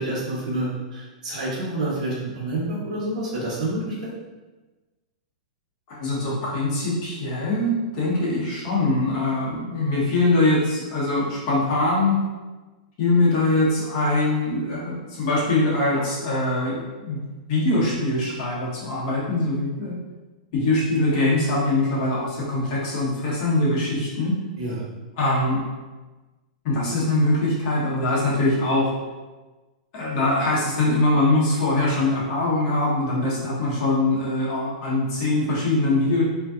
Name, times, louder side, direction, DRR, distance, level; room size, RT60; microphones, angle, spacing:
voice 1, 0.0-4.1 24.6-24.8, right 1 dB, 65° right, -5 dB, 1.0 m, -28 dB
voice 2, 5.9-12.2 13.0-17.2 17.5-20.0 20.5-24.3 25.2-25.6 26.6-28.9 29.9-36.2, left 2 dB, 40° left, -6 dB, 0.9 m, -22 dB
2.6 x 2.2 x 2.3 m, 1.2 s
supercardioid pair, 160°, 4 cm